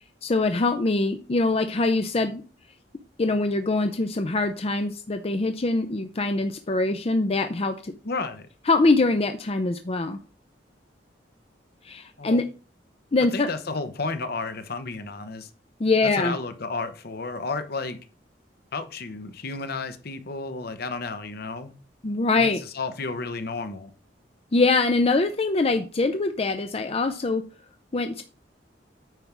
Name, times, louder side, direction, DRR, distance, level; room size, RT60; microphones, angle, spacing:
voice 1, 0.2-2.4 3.2-7.9 8.7-10.2 11.8-12.4 13.1-13.5 15.8-16.4 22.0-22.6 24.5-27.4 27.9-28.2, left 3 dB, 35° left, 7 dB, 0.6 m, -23 dB
voice 2, 8.0-8.5 12.2-12.4 13.3-15.5 16.0-18.0 18.7-21.7 22.4-23.9, left 3 dB, 60° left, 10 dB, 0.9 m, -32 dB
9.2 x 3.5 x 5.9 m, 0.36 s
head